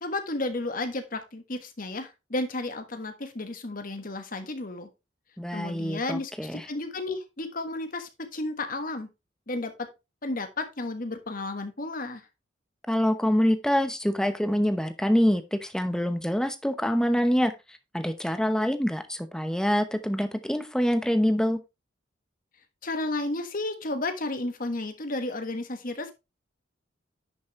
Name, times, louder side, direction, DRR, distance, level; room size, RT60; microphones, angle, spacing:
voice 1, 0.0-4.9 5.5-9.1 9.5-9.9 10.2-12.2 22.8-26.1, left 2 dB, 45° left, 8 dB, 1.4 m, -32 dB
voice 2, 5.4-6.7 12.9-17.5 17.9-21.6, equal, 5° left, 10 dB, 0.8 m, -25 dB
10.5 x 6.3 x 3.1 m, 0.24 s
head